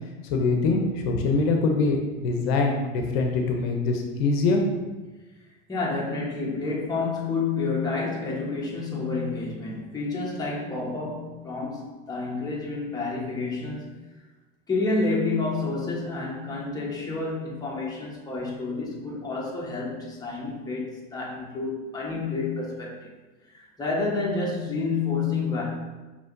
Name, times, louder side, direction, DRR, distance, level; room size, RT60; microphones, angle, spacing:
voice 1, 0.2-4.9, left 3 dB, 80° left, 2 dB, 0.7 m, -24 dB
voice 2, 5.7-13.9 14.7-23.1 23.5-25.6, left 3 dB, 15° left, -4 dB, 1.1 m, -29 dB
5.6 x 3.0 x 2.6 m, 1.2 s
supercardioid pair, 115°, 30 cm